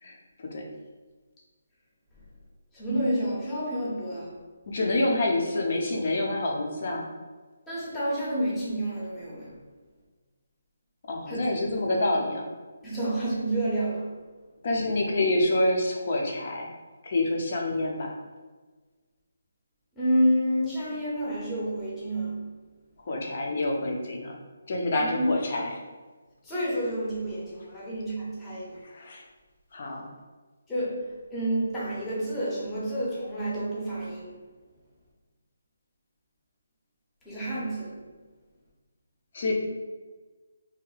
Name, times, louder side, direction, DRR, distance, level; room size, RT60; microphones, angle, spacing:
voice 1, 0.0-0.7 4.7-7.1 11.1-12.5 14.6-16.7 17.0-18.1 23.1-24.3 24.7-25.7 28.8-29.2 29.7-30.1 39.3-39.5, left 2 dB, 50° left, 0 dB, 0.7 m, -27 dB
voice 2, 2.7-4.4 7.7-9.6 11.3-11.8 12.8-14.2 20.0-22.5 25.0-25.3 26.4-28.8 30.7-34.4 37.2-38.1, right 1 dB, 10° left, -8 dB, 0.8 m, -29 dB
2.8 x 2.1 x 3.9 m, 1.3 s
hypercardioid pair, 160°, 0 cm